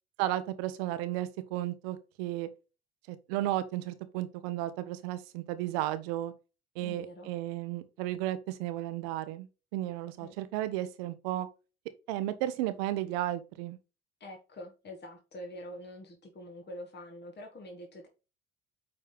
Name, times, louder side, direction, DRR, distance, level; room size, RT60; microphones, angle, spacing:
voice 1, 0.2-2.5 3.1-6.3 6.8-9.5 9.7-11.5 12.1-13.8, right 14 dB, 70° right, 1.0 m, -34 dB
voice 2, 6.8-7.3 10.2-10.4 14.2-18.1, left 1 dB, 35° left, 1.9 m, -45 dB
8.8 x 4.3 x 3.4 m
figure-of-eight pair, 55°, 32 cm